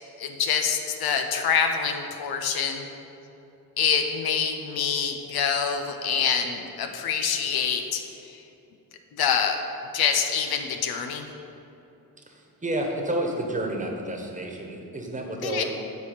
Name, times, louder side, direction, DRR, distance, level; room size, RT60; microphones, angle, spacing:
voice 1, 0.2-2.9 3.8-8.0 8.3-8.4 9.2-9.6 9.9-11.3 15.4-15.6, left 7 dB, 85° left, 5 dB, 0.9 m, -26 dB
voice 2, 12.6-15.6, right 1 dB, 20° right, 1 dB, 1.3 m, -30 dB
8.2 x 4.8 x 7.2 m, 2.9 s
cardioid pair, 105°, 36 cm